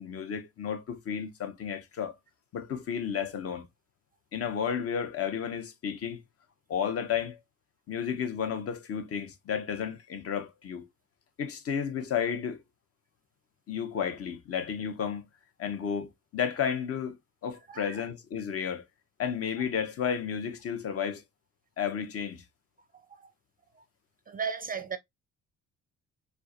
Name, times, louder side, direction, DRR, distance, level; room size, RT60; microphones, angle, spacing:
voice 1, 0.0-2.2 2.5-3.6 4.3-6.2 6.7-7.4 7.9-10.8 11.4-12.6 13.7-15.3 15.6-17.1 17.4-18.8 19.2-21.2 21.8-22.4, left 7 dB, 50° left, 0.8 m, -32 dB
voice 2, 17.7-18.0 23.2-23.3 24.3-25.0, right 6 dB, 30° right, 0.4 m, -35 dB
4.4 x 2.2 x 2.5 m
cardioid pair, 90°, 30 cm